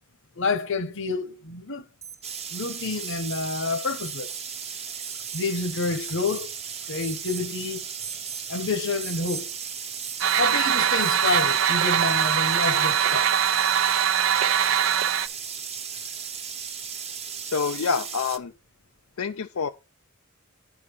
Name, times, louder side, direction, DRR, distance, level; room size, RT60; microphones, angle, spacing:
voice 1, 0.4-1.8 2.5-4.4 5.3-6.5 6.9-7.9 8.5-9.5 10.4-13.3, left 3 dB, 65° left, 1.1 m, -28 dB
Alarm, 2.0-2.5 3.0-3.5 4.0-4.5 5.0-5.5 6.0-6.5 7.0-7.5 8.0-8.5 9.0-9.5 10.0-10.5 11.0-11.5 13.2-13.3, right 8 dB, 15° right, 0.5 m, -40 dB
sound 1, 2.2-18.4, right 7 dB, 30° right, 0.9 m, -36 dB
sound 2, 10.2-15.3, right 9 dB, 70° right, 0.7 m, -22 dB
voice 2, 17.5-18.5 19.2-19.7, left 5 dB, 90° left, 0.5 m, -27 dB
9.7 x 5.0 x 5.4 m
head